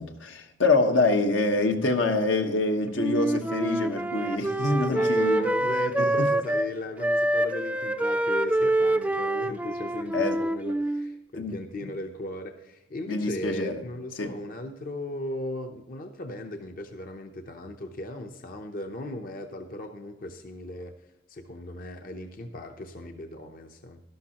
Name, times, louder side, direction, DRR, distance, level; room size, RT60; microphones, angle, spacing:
voice 1, 0.0-5.5 6.2-6.3 10.1-10.4 11.3-11.5 13.0-13.8 14.2-14.3, left 2 dB, 85° left, 1.2 m, -25 dB
Wind instrument woodwind instrument, 3.0-6.7 7.0-11.1, right 1 dB, 5° right, 0.3 m, -26 dB
voice 2, 4.8-20.9 21.3-24.0, left 1 dB, 50° left, 0.7 m, -37 dB
12.5 x 12.0 x 2.9 m
head